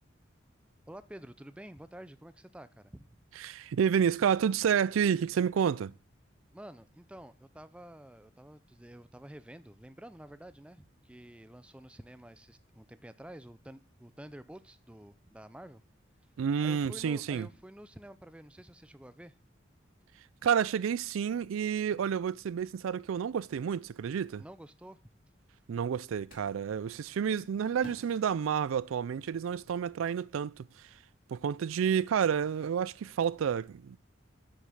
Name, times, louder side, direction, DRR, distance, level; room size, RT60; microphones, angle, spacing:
voice 1, 0.9-3.1 6.5-15.8 16.6-19.3 24.4-25.0, right 1 dB, 5° right, 0.4 m, -49 dB
voice 2, 3.4-5.9 16.4-17.5 20.4-24.4 25.7-30.9 31.3-34.0, right 7 dB, 90° right, 0.3 m, -30 dB
sound 1, 26.3-26.8 27.8-29.3, left 1 dB, 40° left, 2.4 m, -54 dB
7.5 x 6.7 x 6.3 m
head